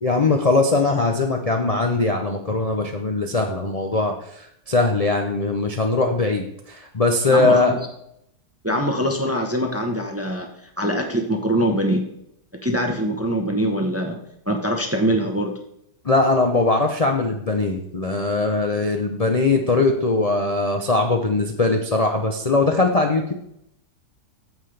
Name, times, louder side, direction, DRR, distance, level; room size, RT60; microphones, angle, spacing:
voice 1, 0.0-7.7 16.0-23.3, left 3 dB, 75° left, 2 dB, 0.3 m, -21 dB
voice 2, 7.3-7.8 8.6-10.5 10.8-12.0 12.6-14.2 14.5-15.5, equal, 20° right, 3 dB, 0.4 m, -23 dB
9.1 x 7.4 x 3.3 m, 0.76 s
omnidirectional pair, 1.8 m